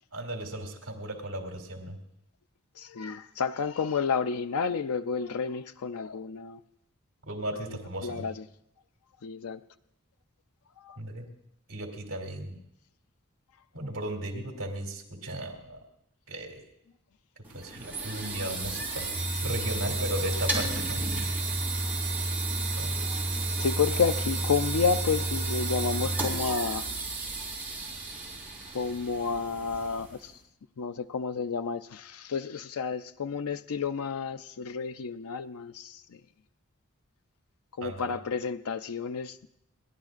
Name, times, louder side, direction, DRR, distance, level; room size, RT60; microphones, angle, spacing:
voice 1, 0.1-2.0 7.3-8.3 11.0-11.3 11.7-12.6 13.7-15.8 16.3-16.6 17.5-19.1 19.4-21.0 22.8-23.1 37.8-38.1, right 1 dB, 60° right, 2 dB, 2.7 m, -36 dB
voice 2, 2.8-6.6 8.0-8.3 9.2-9.6 10.8-11.0 23.6-26.9 28.7-30.3 30.8-36.2 37.8-39.5, left 5 dB, 80° left, 11 dB, 0.5 m, -30 dB
sound 1, 17.4-30.2, right 2 dB, 10° right, 3.1 m, -31 dB
29.5 x 11.0 x 2.5 m, 0.76 s
head